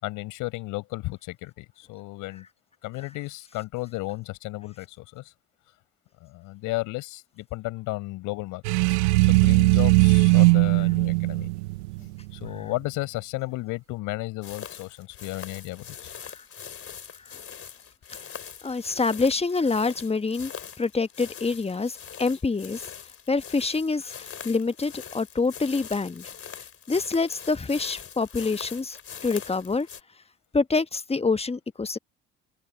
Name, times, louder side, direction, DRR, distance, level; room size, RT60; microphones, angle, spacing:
voice 1, 0.0-2.5 2.8-5.3 6.2-8.6 8.9-11.5 12.0-16.1, left 21 dB, 70° left, 5.1 m, -34 dB
sound 1, 8.6-12.6, right 24 dB, 80° right, 0.6 m, -19 dB
sound 2, 14.4-30.0, left 8 dB, 45° left, 3.6 m, -42 dB
voice 2, 18.6-20.5 20.8-22.8 23.3-26.3 26.9-29.9 30.5-32.0, left 4 dB, 20° left, 1.3 m, -26 dB
hypercardioid pair, 55°, 32 cm